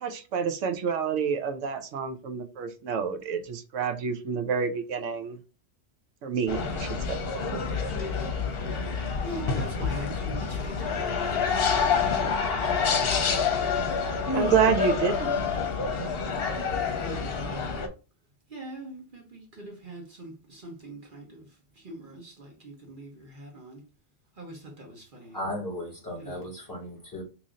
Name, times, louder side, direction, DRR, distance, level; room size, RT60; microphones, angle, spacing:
voice 1, 0.0-5.4 6.2-7.2 7.5-7.6 14.3-15.3, right 6 dB, 85° right, 1.0 m, -28 dB
sound 1, 6.5-17.9, left 5 dB, 60° left, 0.8 m, -27 dB
voice 2, 9.2-11.8 13.6-14.0 16.9-17.6 18.5-21.4 21.8-23.8 24.4-25.4 26.2-26.5, right 1 dB, 45° right, 1.1 m, -42 dB
voice 3, 25.3-27.2, left 1 dB, 15° left, 1.5 m, -36 dB
3.1 x 2.7 x 3.6 m
omnidirectional pair, 1.2 m